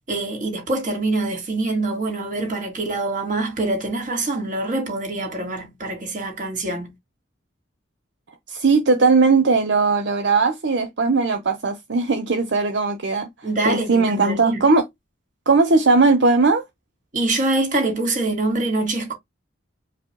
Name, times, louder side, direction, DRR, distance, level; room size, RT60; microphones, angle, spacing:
voice 1, 0.1-6.9 13.4-14.7 17.1-19.1, right 2 dB, 45° right, 2.3 m, -25 dB
voice 2, 8.5-13.3 13.6-14.8 15.5-16.6, right 3 dB, 65° right, 0.8 m, -18 dB
5.0 x 2.0 x 4.6 m
head